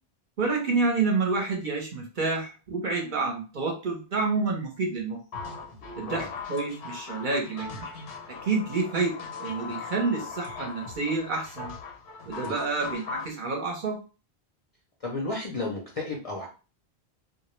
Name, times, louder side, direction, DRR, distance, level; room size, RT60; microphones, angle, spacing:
voice 1, 0.4-5.2 6.0-7.9 8.4-9.1 9.4-11.7 12.3-14.0, right 4 dB, 55° right, 1 dB, 0.7 m, -28 dB
sound 1, 5.3-13.3, left 5 dB, 90° left, 1.0 m, -39 dB
voice 2, 15.0-16.5, left 2 dB, 50° left, -2 dB, 0.4 m, -33 dB
2.2 x 2.0 x 3.0 m, 0.34 s
omnidirectional pair, 1.1 m